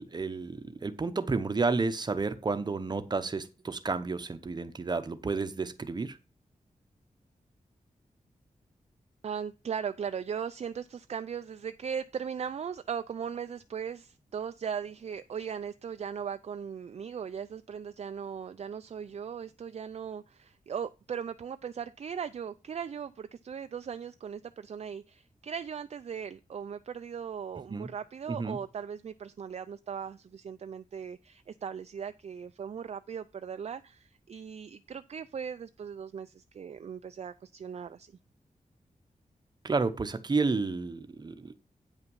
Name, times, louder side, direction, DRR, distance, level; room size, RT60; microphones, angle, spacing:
voice 1, 0.0-6.2 27.7-27.9 28.3-28.6 39.6-41.5, right 4 dB, 30° right, 10 dB, 0.8 m, -31 dB
voice 2, 9.2-38.1, right 7 dB, 50° right, 10 dB, 0.4 m, -38 dB
9.1 x 5.7 x 5.4 m, 0.30 s
wide cardioid pair, 170°, 14 cm